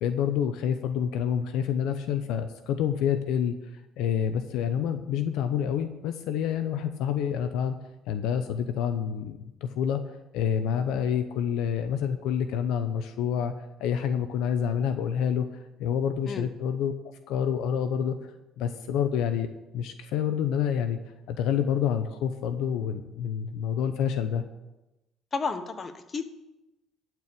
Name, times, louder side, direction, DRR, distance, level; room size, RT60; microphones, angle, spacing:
voice 1, 0.0-3.6 4.0-7.8 8.1-13.5 13.8-16.9 17.3-18.1 18.6-19.5 19.7-21.0 21.3-24.4, left 8 dB, 80° left, 9 dB, 0.7 m, -28 dB
voice 2, 25.3-26.2, left 4 dB, 35° left, 9 dB, 1.2 m, -32 dB
12.0 x 4.6 x 8.3 m, 0.97 s
supercardioid pair, 75°, 0 cm